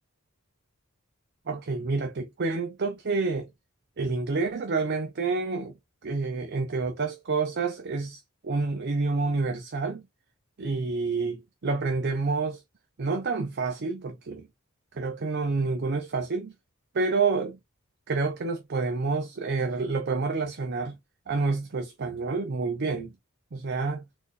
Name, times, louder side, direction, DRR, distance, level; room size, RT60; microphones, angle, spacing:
voice 1, 1.5-3.5 4.0-5.8 6.0-10.0 10.6-12.6 13.0-14.5 14.9-16.5 16.9-17.6 18.1-21.0 21.3-23.1 23.5-24.1, right 4 dB, 50° right, 0.6 m, -28 dB
4.1 x 2.5 x 2.5 m
head